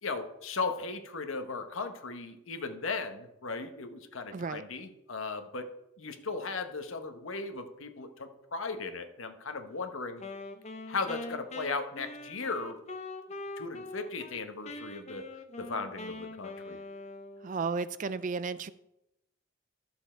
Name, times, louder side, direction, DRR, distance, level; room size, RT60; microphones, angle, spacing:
voice 1, 0.0-5.7 6.0-10.2 10.9-12.7 13.6-15.3 15.6-16.8, left 4 dB, 65° left, 8 dB, 1.1 m, -37 dB
voice 2, 4.3-4.6 17.4-18.7, right 4 dB, 35° right, 15 dB, 0.3 m, -33 dB
Wind instrument woodwind instrument, 10.2-14.4 14.6-17.6, left 2 dB, 30° left, 0.7 m, -43 dB
12.5 x 7.0 x 4.4 m, 0.87 s
head